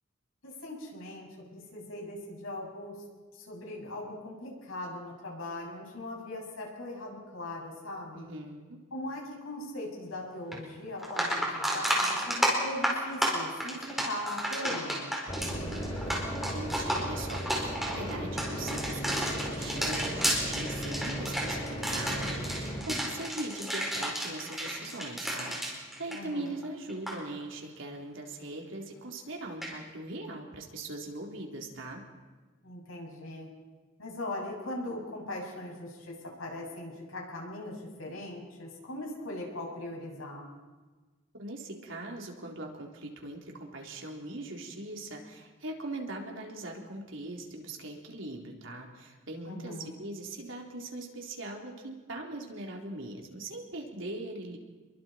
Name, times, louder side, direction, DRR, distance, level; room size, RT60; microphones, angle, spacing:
voice 1, 0.4-3.0 3.3-8.3 8.9-15.1 26.1-26.6 32.6-33.5 34.0-40.5 49.4-49.9, left 1 dB, 80° left, -1 dB, 7.4 m, -40 dB
voice 2, 8.1-8.8 15.4-32.0 41.3-54.6, right 2 dB, 70° right, 0 dB, 3.8 m, -41 dB
sound 1, 10.5-10.6 11.0-26.6 26.9-27.2 29.6-29.7, equal, ahead, 4.5 m, -32 dB
sound 2, 15.3-22.8, equal, 25° left, 2.9 m, -36 dB
29.0 x 23.0 x 4.6 m, 1.3 s
head